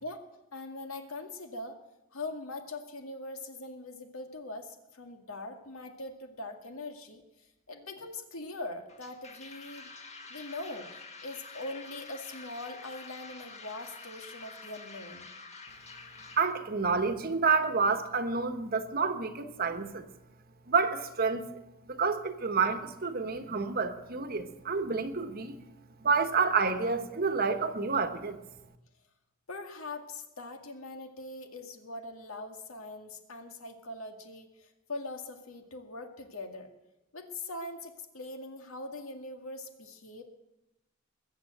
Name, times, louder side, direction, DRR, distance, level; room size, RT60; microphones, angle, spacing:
voice 1, 0.5-1.8 2.1-9.9 10.3-10.9 11.2-15.3 29.5-36.7 37.1-40.2, left 2 dB, 85° left, 5 dB, 2.0 m, -42 dB
sound 1, 8.9-16.5, left 4 dB, 30° left, 1.5 m, -48 dB
voice 2, 16.4-20.1 20.7-21.4 21.9-25.6 26.0-28.4, right 5 dB, 45° right, 9 dB, 1.2 m, -29 dB
21.5 x 7.6 x 7.9 m, 0.95 s
head